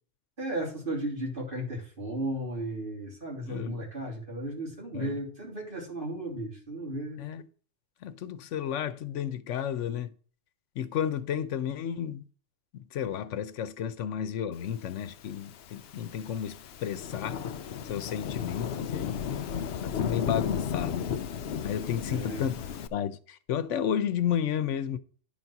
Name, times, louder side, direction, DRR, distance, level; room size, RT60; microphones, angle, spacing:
voice 1, 0.4-7.2 22.1-22.5, right 1 dB, 45° right, 3.5 m, -35 dB
voice 2, 3.5-3.9 4.9-5.1 7.2-7.4 8.0-10.1 10.8-12.2 12.7-17.4 17.9-19.3 19.8-21.1 21.6-22.6 22.9-25.0, left 9 dB, 85° left, 1.0 m, -32 dB
Thunderstorm / Rain, 15.2-22.9, left 8 dB, 65° left, 0.8 m, -34 dB
10.5 x 4.1 x 5.8 m
omnidirectional pair, 1.2 m